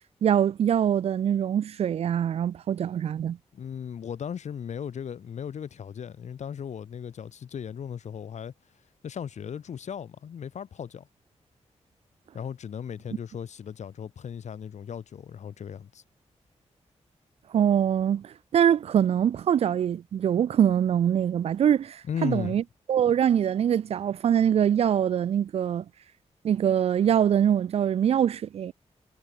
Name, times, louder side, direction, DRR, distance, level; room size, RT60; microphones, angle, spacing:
voice 1, 0.2-3.4 17.5-22.6 22.9-25.8 26.4-28.7, right 9 dB, 60° right, 0.4 m, -23 dB
voice 2, 3.5-8.5 9.0-11.1 12.3-16.0 22.1-22.6, left 8 dB, 75° left, 5.2 m, -36 dB
wide cardioid pair, 180°, 12 cm